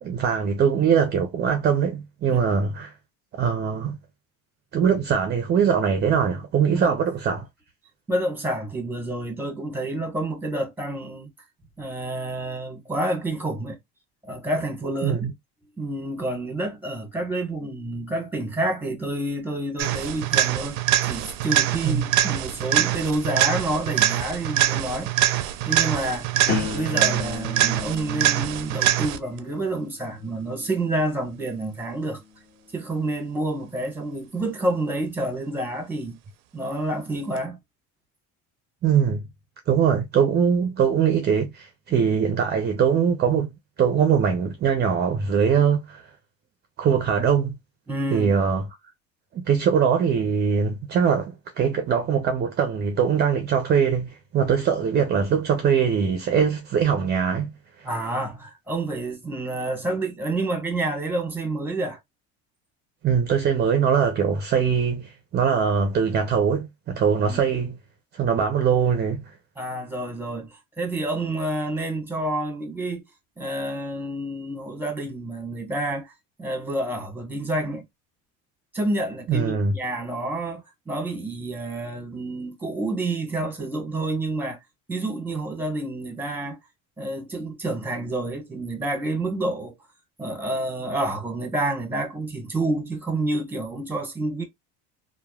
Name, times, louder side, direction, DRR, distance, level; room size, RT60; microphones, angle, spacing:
voice 1, 0.0-2.9 3.4-4.0 4.7-7.5 15.0-15.3 21.8-22.1 38.8-39.2 39.7-43.5 43.8-46.0 46.8-47.6 48.1-48.7 49.3-57.5 57.8-57.9 63.0-67.8 68.1-69.3 79.3-79.7, right 7 dB, 30° right, 0.5 m, -22 dB
voice 2, 2.3-2.7 6.7-7.0 8.1-11.3 11.8-13.8 14.2-15.3 15.8-20.8 21.0-25.1 25.6-26.3 26.7-32.2 32.7-36.2 36.5-37.6 41.9-42.1 47.9-48.4 57.8-62.0 67.2-67.4 69.6-73.0 73.4-76.1 76.4-77.8 78.7-84.6 84.9-86.6 87.0-89.7 90.2-94.4, right 2 dB, 5° right, 1.0 m, -28 dB
sound 1, 19.8-29.4 37.4-37.5, right 13 dB, 90° right, 0.5 m, -24 dB
sound 2, 26.5-32.3 32.9-33.3, left 7 dB, 30° left, 0.6 m, -36 dB
3.0 x 2.2 x 2.2 m
cardioid pair, 120°, 33 cm